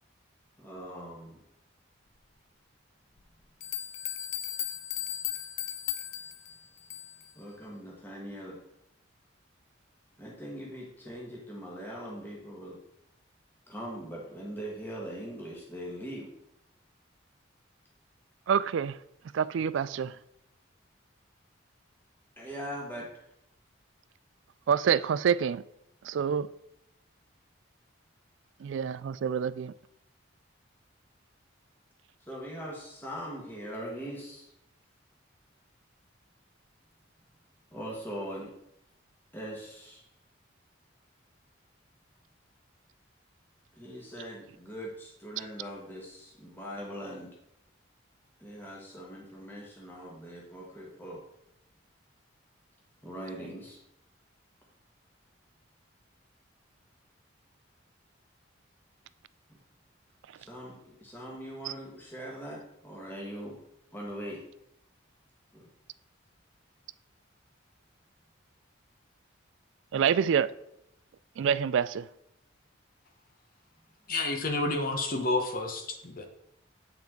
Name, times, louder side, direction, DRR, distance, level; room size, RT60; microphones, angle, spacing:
voice 1, 0.6-1.4 7.3-8.6 10.2-12.8 13.7-16.3 22.4-23.1 32.2-34.5 37.7-38.5 39.3-40.0 43.7-47.3 48.4-51.2 53.0-53.8 59.5-59.6 60.4-63.6 63.9-64.4 65.5-65.7, equal, 10° left, 1.5 m, -41 dB
sound 1, 3.2-3.3 3.6-7.3, left 11 dB, 80° left, 0.6 m, -36 dB
voice 2, 18.5-19.0 19.3-20.2 24.7-25.6 26.0-26.5 28.6-29.7 61.7-61.8 69.9-70.5 71.4-72.1, right 7 dB, 70° right, 0.3 m, -27 dB
voice 3, 74.1-76.2, left 2 dB, 45° left, 1.0 m, -30 dB
8.8 x 5.8 x 3.7 m
head